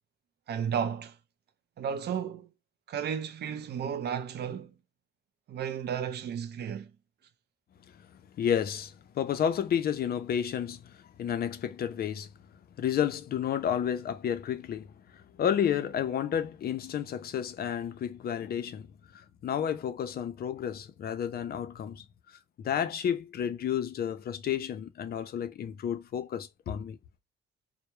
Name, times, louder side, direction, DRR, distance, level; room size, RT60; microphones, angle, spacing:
voice 1, 0.5-1.2 1.8-2.5 2.9-4.7 5.5-6.9, right 8 dB, 55° right, 0.4 m, -33 dB
voice 2, 8.4-12.3 12.8-18.9 19.1-27.0, left 9 dB, 50° left, 0.4 m, -31 dB
2.2 x 2.0 x 2.9 m
cardioid pair, 90°, 20 cm